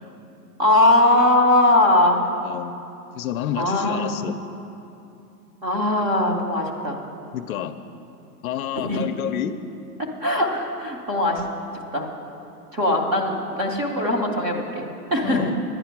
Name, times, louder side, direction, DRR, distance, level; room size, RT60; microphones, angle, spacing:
voice 1, 0.6-2.2 3.6-4.2 5.6-7.0 8.7-9.1 10.2-11.5 11.9-12.1 12.7-15.5, left 1 dB, 20° right, 0 dB, 0.8 m, -20 dB
voice 2, 2.4-2.8 3.1-4.4 7.3-7.7 8.4-9.6 15.2-15.5, left 10 dB, 60° left, 8 dB, 0.6 m, -29 dB
10.5 x 9.8 x 5.9 m, 2.8 s
hypercardioid pair, 165°, 48 cm